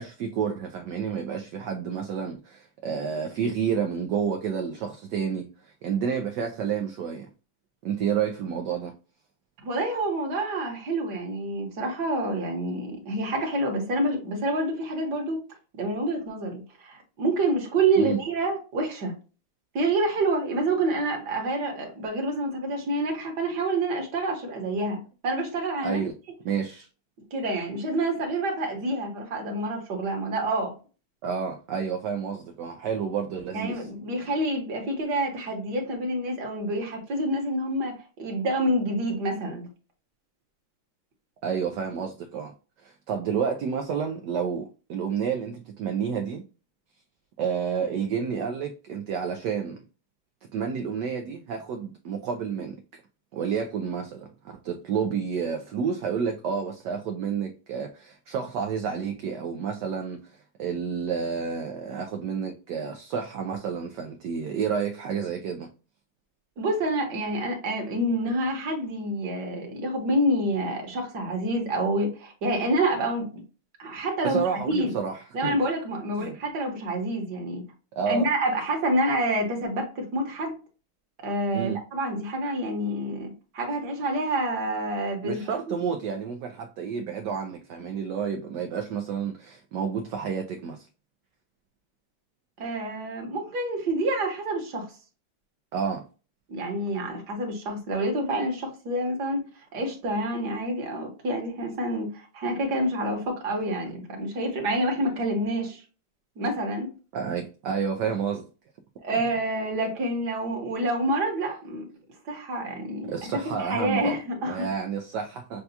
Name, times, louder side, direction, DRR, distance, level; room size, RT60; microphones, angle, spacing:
voice 1, 0.0-7.3 7.8-8.9 18.0-18.2 25.8-26.1 26.4-26.9 31.2-33.9 41.4-42.5 42.8-46.4 47.4-49.8 50.5-52.8 53.3-65.7 74.2-75.6 76.2-76.4 78.0-78.3 81.5-81.8 85.2-90.9 95.7-96.0 107.1-108.4 113.1-114.2 114.5-115.6, right 6 dB, 75° right, 1.0 m, -30 dB
voice 2, 9.6-15.4 15.7-19.1 19.7-26.0 27.3-30.7 33.5-39.7 66.6-73.4 73.8-74.9 75.3-77.6 78.1-80.5 81.2-85.4 92.6-94.9 96.5-99.4 99.7-105.8 106.4-106.9 109.0-111.8 112.2-114.7, right 1 dB, 55° right, 1.6 m, -28 dB
6.7 x 2.3 x 2.7 m
omnidirectional pair, 2.4 m